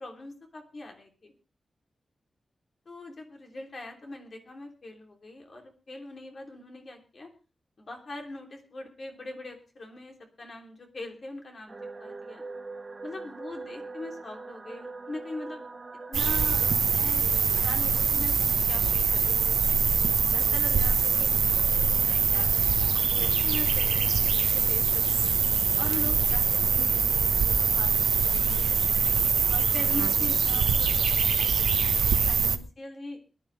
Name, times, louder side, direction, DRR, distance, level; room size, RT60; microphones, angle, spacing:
voice 1, 0.0-1.3 2.8-7.3 7.8-11.7 12.0-12.4 13.0-15.7 16.1-18.4 18.7-19.9 20.3-24.1 24.4-25.3 25.8-29.1 29.5-33.2, left 2 dB, 45° left, 3 dB, 3.2 m, -42 dB
sound 1, 11.7-16.7, right 3 dB, 35° right, 1.4 m, -42 dB
sound 2, 16.1-32.6, right 6 dB, 85° right, 1.1 m, -24 dB
22.5 x 11.5 x 3.3 m, 0.33 s
wide cardioid pair, 145°, 0 cm